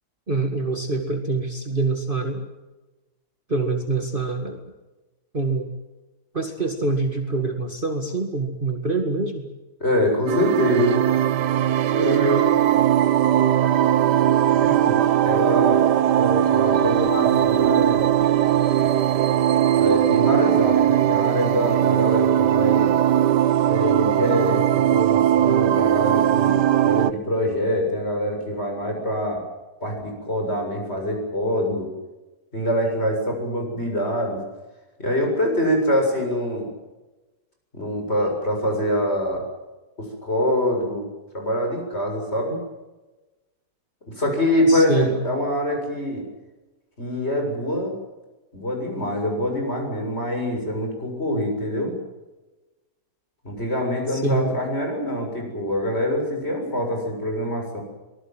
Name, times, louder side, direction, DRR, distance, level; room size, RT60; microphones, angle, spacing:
voice 1, 0.3-2.4 3.5-4.6 5.3-5.7 6.3-9.5 44.7-45.2 54.1-54.5, right 3 dB, 30° right, 4 dB, 2.3 m, -25 dB
voice 2, 9.8-11.0 11.9-12.5 14.6-15.0 15.3-15.9 16.2-18.1 19.8-23.0 23.7-29.4 29.8-31.9 32.5-34.4 35.0-36.7 37.7-39.5 40.2-41.1 41.3-42.6 44.2-46.2 47.0-48.0 48.5-51.9 53.4-57.8, equal, 35° left, 2 dB, 7.6 m, -24 dB
sound 1, 10.3-27.1, right 11 dB, 75° right, 1.5 m, -19 dB
25.0 x 19.5 x 7.8 m, 1.1 s
omnidirectional pair, 1.8 m